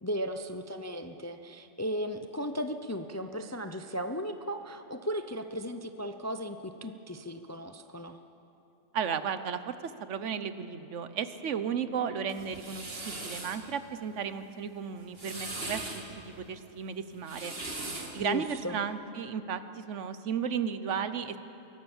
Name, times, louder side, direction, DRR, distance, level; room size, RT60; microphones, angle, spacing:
voice 1, 0.0-8.2 18.2-18.8, equal, 20° left, 7 dB, 0.4 m, -36 dB
voice 2, 8.9-17.6 18.1-21.4, right 7 dB, 65° right, 11 dB, 1.2 m, -34 dB
sound 1, 12.3-13.6 15.0-16.0 17.1-18.2, right 2 dB, 45° right, 2.4 m, -39 dB
24.0 x 17.5 x 7.2 m, 3.0 s
omnidirectional pair, 1.4 m